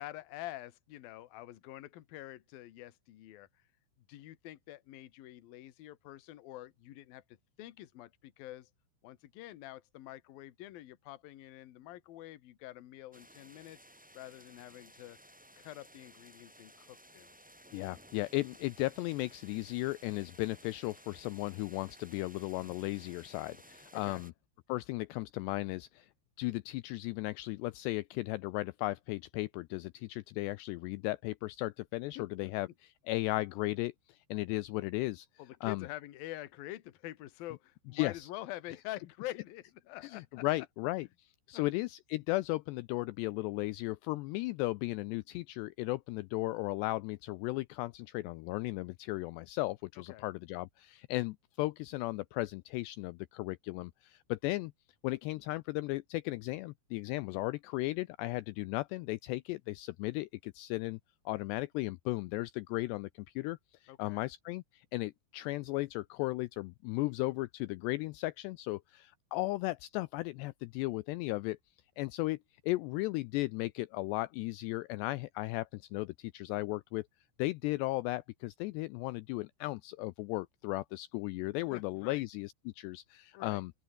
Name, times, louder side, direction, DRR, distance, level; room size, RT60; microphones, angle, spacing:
voice 1, 0.0-3.5 4.1-8.7 9.0-13.8 14.1-15.2 15.6-17.3 23.9-24.2 32.2-32.5 35.4-40.4 41.5-41.6 50.1-50.2 57.3-57.4 63.9-64.2 81.6-82.2 83.3-83.6, left 15 dB, 60° left, 2.8 m, -46 dB
sound 1, 13.1-24.3, equal, 10° right, 0.5 m, -57 dB
voice 2, 17.7-24.3 24.7-26.1 26.4-35.3 35.6-35.9 37.9-38.3 40.0-41.1 41.5-54.7 55.0-61.0 61.3-71.6 72.0-72.4 72.6-77.1 77.4-83.7, left 20 dB, 90° left, 2.4 m, -36 dB
open air
omnidirectional pair, 5.5 m